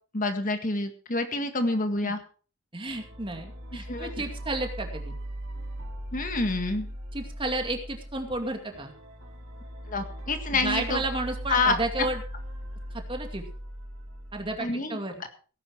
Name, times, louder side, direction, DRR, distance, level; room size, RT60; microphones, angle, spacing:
voice 1, 0.1-2.2 3.9-4.3 6.1-6.9 9.9-11.0 11.5-12.1 14.6-15.0, left 3 dB, 40° left, 7 dB, 1.9 m, -27 dB
voice 2, 2.7-5.1 7.1-8.9 10.5-12.2 13.1-13.4 14.3-15.2, right 2 dB, 25° right, 4 dB, 2.4 m, -32 dB
sound 1, 2.9-14.6, right 1 dB, 65° right, 4.4 m, -39 dB
17.5 x 9.9 x 4.7 m, 0.40 s
head